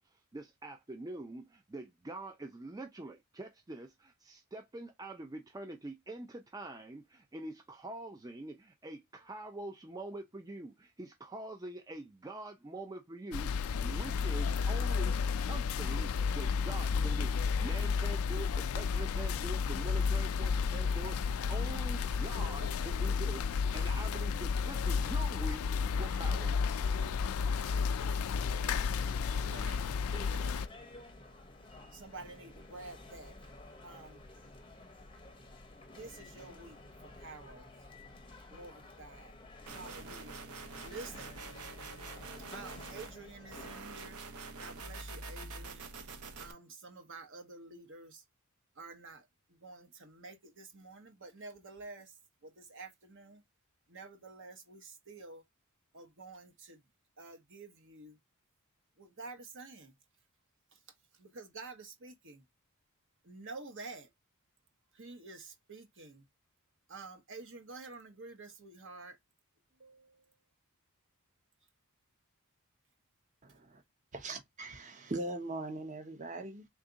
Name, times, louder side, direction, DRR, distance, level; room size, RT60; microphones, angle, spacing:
voice 1, 0.0-25.7 25.9-26.8, right 2 dB, 15° right, 0.4 m, -45 dB
sound 1, 13.3-30.7, left 5 dB, 70° left, 0.3 m, -32 dB
voice 2, 27.6-28.2 29.3-30.6 31.9-33.5 33.8-34.2 35.9-36.8 37.0-37.7 38.5-39.3 39.7-40.4 40.8-41.4 42.5-44.2 44.6-45.9 46.4-48.2 48.8-52.1 52.4-53.4 53.9-55.4 55.9-56.8 57.2-58.2 59.0-59.9 60.7-60.8 61.2-62.4 63.2-64.1 64.9-66.2 66.9-69.2 69.8-70.2, right 3 dB, 60° right, 1.1 m, -49 dB
sound 2, 28.4-43.8, left 2 dB, 20° left, 0.6 m, -52 dB
sound 3, 39.7-43.1 43.5-46.5, right 3 dB, 85° right, 0.8 m, -46 dB
voice 3, 73.4-73.8 74.1-76.7, right 2 dB, 35° right, 0.8 m, -40 dB
3.5 x 2.6 x 3.9 m
head